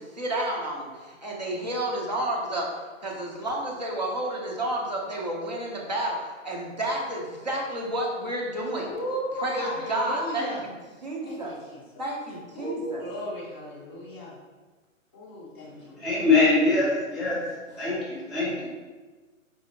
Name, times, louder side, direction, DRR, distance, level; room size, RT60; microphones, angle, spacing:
voice 1, 0.0-2.7 3.0-8.9 9.4-10.7 11.0-11.6 12.0-13.0 17.4-17.5, right 1 dB, 35° right, -2 dB, 0.4 m, -30 dB
voice 2, 8.9-10.6 11.2-11.8 12.5-14.3 15.1-16.0, equal, 20° left, -9 dB, 0.7 m, -35 dB
voice 3, 16.0-17.4 17.8-18.7, left 3 dB, 5° right, -18 dB, 1.0 m, -23 dB
4.7 x 2.5 x 2.7 m, 1.3 s
hypercardioid pair, 175°, 40 cm